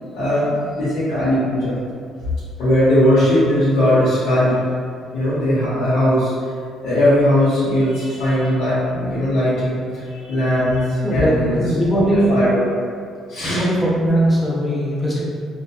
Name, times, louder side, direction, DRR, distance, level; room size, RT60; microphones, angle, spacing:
voice 1, 0.1-1.8 2.6-4.6 5.1-6.5 6.8-12.0 12.3-12.7 13.3-13.6, left 1 dB, 85° left, -13 dB, 0.8 m, -19 dB
voice 2, 11.0-12.5 13.4-15.2, right 1 dB, 10° left, -6 dB, 0.5 m, -19 dB
2.6 x 2.2 x 2.3 m, 2.2 s
cardioid pair, 165°, 0 cm